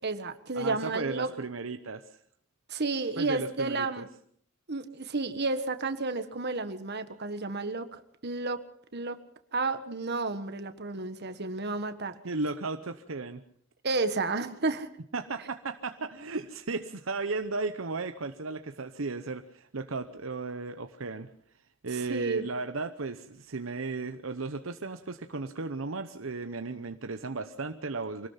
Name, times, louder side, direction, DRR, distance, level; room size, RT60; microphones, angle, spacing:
voice 1, 0.0-1.3 2.7-4.1 4.7-8.6 8.9-9.2 9.5-12.2 13.8-14.9 22.1-22.4, right 3 dB, 55° right, 10 dB, 1.6 m, -31 dB
voice 2, 0.5-2.2 3.2-4.0 12.2-13.4 15.1-21.3 21.8-28.3, right 3 dB, 75° right, 8 dB, 0.9 m, -35 dB
25.0 x 18.5 x 5.7 m, 0.63 s
head